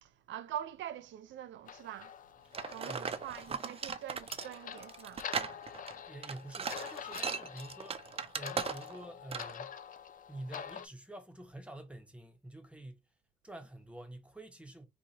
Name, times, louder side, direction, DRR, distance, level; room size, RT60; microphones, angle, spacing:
voice 1, 0.0-2.2 2.7-5.5, right 11 dB, 70° right, 0.6 m, -44 dB
sound 1, 1.7-10.9, left 8 dB, 45° left, 0.4 m, -46 dB
sound 2, 2.5-9.0 9.3-9.6, right 6 dB, 30° right, 0.5 m, -38 dB
voice 2, 2.8-3.2 3.5-3.6 6.1-9.8 10.3-13.0 13.4-14.9, right 1 dB, 5° right, 0.9 m, -48 dB
2.9 x 2.4 x 4.0 m
cardioid pair, 90°, 20 cm